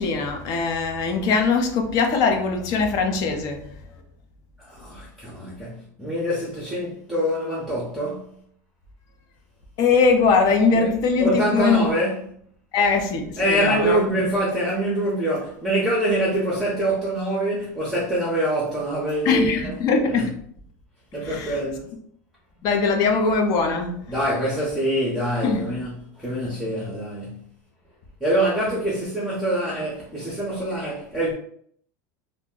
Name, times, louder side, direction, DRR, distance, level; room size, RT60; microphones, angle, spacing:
voice 1, 0.0-3.6 9.8-11.9 12.7-14.0 19.2-20.3 21.2-21.6 22.6-24.0 25.4-25.7, left 4 dB, 45° left, 0.5 m, -21 dB
voice 2, 4.6-8.3 10.7-10.9 11.2-12.2 13.4-19.8 20.1-20.3 21.1-21.9 24.1-27.4 28.2-31.3, right 1 dB, 5° right, 0.7 m, -25 dB
2.5 x 2.1 x 3.6 m
supercardioid pair, 145°, 9 cm